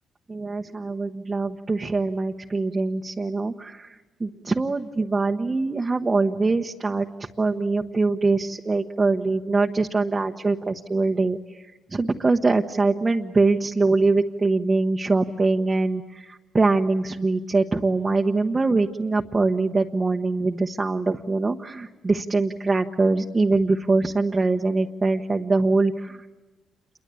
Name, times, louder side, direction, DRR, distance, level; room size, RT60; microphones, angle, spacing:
voice 1, 0.3-3.9 4.2-7.1 7.4-11.4 11.9-26.2, right 3 dB, 25° right, 2 dB, 1.1 m, -23 dB
28.5 x 23.0 x 8.4 m, 1.2 s
cardioid pair, 90°, 0 cm